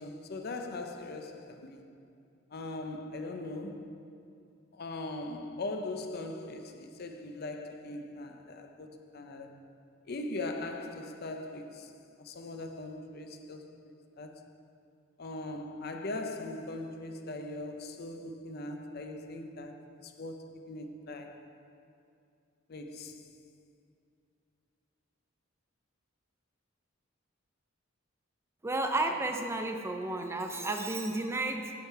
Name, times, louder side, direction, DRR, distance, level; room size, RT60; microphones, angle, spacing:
voice 1, 0.0-1.9 2.5-4.0 4.7-9.6 10.1-11.9 12.2-14.5 15.2-21.4 22.7-23.3, left 2 dB, 50° left, 0.6 m, -40 dB
voice 2, 28.6-31.7, right 2 dB, 15° right, 0.4 m, -32 dB
8.6 x 7.6 x 4.6 m
head